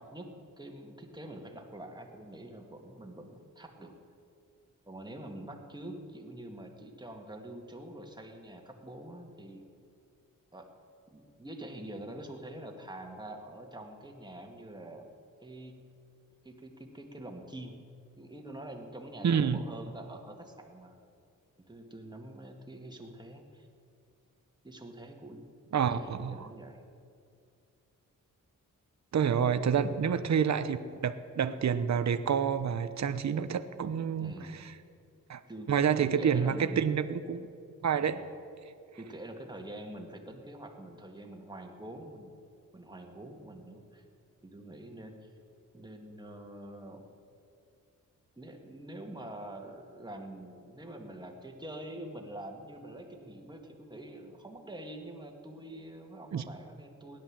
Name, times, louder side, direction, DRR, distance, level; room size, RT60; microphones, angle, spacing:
voice 1, 0.0-4.0 4.9-9.6 10.5-10.7 11.1-15.1 15.4-15.8 16.4-17.8 18.2-21.0 21.6-23.7 24.6-25.5 25.8-26.8 30.0-30.3 34.2-34.7 35.5-35.7 36.0-37.0 38.0-38.2 39.0-42.3 42.7-44.0 44.4-45.3 45.7-47.1 48.4-57.2, right 1 dB, 15° right, 2 dB, 2.0 m, -45 dB
voice 2, 19.2-19.6 25.7-26.5 29.1-30.8 31.0-34.7 35.3-35.4 35.7-37.5 37.8-38.2 56.3-56.4, right 7 dB, 55° right, 11 dB, 0.8 m, -28 dB
16.5 x 10.5 x 7.4 m, 2.4 s
cardioid pair, 90°, 33 cm